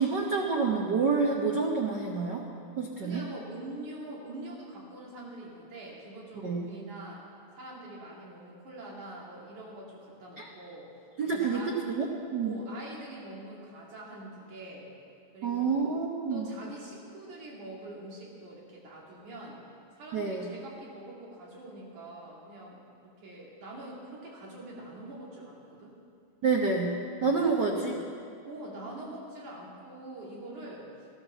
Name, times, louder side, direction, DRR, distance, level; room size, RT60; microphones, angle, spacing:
voice 1, 0.0-2.5 2.8-3.2 6.4-6.6 10.4-10.5 11.2-12.5 15.4-16.4 20.1-20.5 26.4-27.0 27.2-27.9, right 4 dB, 85° right, -1 dB, 0.9 m, -28 dB
voice 2, 3.0-7.3 7.5-10.9 11.3-11.8 12.4-14.9 15.3-15.8 16.3-19.6 19.9-25.9 27.4-27.6 28.4-31.1, right 1 dB, 70° right, -4 dB, 4.0 m, -44 dB
15.5 x 10.5 x 6.9 m, 2.4 s
omnidirectional pair, 3.7 m